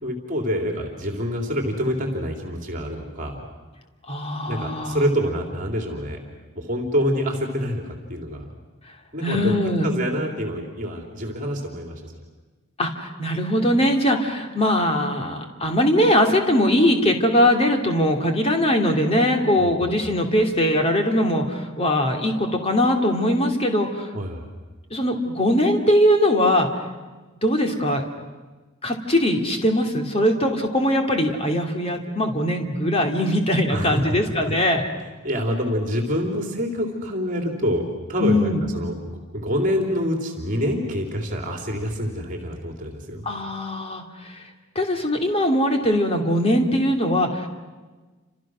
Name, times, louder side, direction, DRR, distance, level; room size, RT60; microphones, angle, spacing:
voice 1, 0.0-3.4 4.5-6.2 6.6-7.8 8.1-8.5 9.1-9.5 9.8-12.1 19.6-19.7 24.1-24.5 33.7-34.2 35.0-43.2, equal, 40° right, 3 dB, 3.3 m, -26 dB
voice 2, 4.1-5.1 9.2-9.9 12.8-24.1 24.9-26.7 27.4-28.0 28.8-34.8 38.2-38.6 43.2-44.4 44.7-47.5, left 1 dB, 30° left, 3 dB, 2.8 m, -21 dB
30.0 x 27.0 x 6.3 m, 1.3 s
head